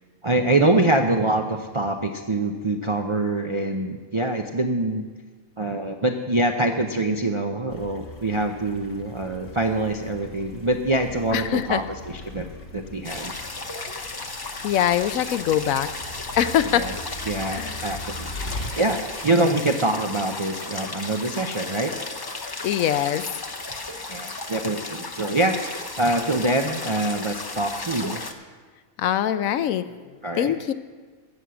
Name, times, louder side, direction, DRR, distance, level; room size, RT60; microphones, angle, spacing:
voice 1, 0.2-5.1 5.6-11.8 12.3-12.5 12.7-13.3 16.7-16.9 17.3-21.9 24.1-28.2 30.2-30.5, right 2 dB, 45° right, 3 dB, 0.3 m, -24 dB
sound 1, 7.7-18.7, left 1 dB, 55° left, 1.6 m, -40 dB
voice 2, 11.3-11.8 14.0-14.2 14.6-15.9 16.4-16.9 17.5-18.0 22.6-23.3 29.0-30.7, left 10 dB, 75° left, 12 dB, 1.0 m, -23 dB
sound 2, 13.0-28.3, left 3 dB, 25° left, 0.6 m, -34 dB
15.0 x 6.3 x 6.9 m, 1.4 s
omnidirectional pair, 1.5 m